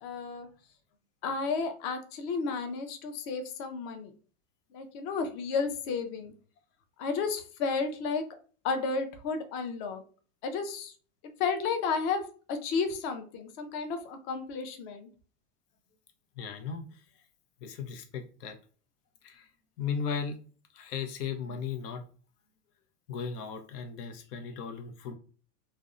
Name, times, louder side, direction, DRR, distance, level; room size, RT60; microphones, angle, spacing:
voice 1, 0.0-0.5 1.2-4.1 4.7-6.3 7.0-8.3 8.6-10.0 10.4-10.9 11.4-15.1, left 5 dB, 40° left, 0.5 m, -32 dB
voice 2, 16.4-17.0 17.6-18.6 19.2-19.5 19.8-20.4 20.7-22.1 23.1-25.2, left 6 dB, 85° left, 0.7 m, -36 dB
2.5 x 2.1 x 2.4 m
hypercardioid pair, 120°, 46 cm